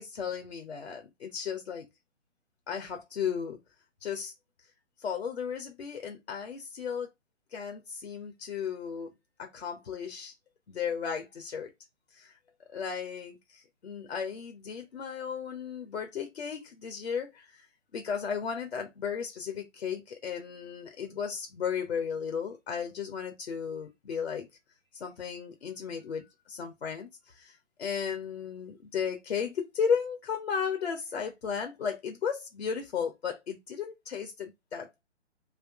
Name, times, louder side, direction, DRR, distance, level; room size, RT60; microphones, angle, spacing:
voice 1, 0.0-1.8 2.7-3.6 4.0-4.3 5.0-7.1 7.5-9.1 9.4-10.3 10.7-11.7 12.1-12.3 12.7-17.7 17.9-24.5 24.9-35.0, left 7 dB, 55° left, 0.9 m, -35 dB
3.6 x 2.7 x 3.5 m
figure-of-eight pair, 140°, 37 cm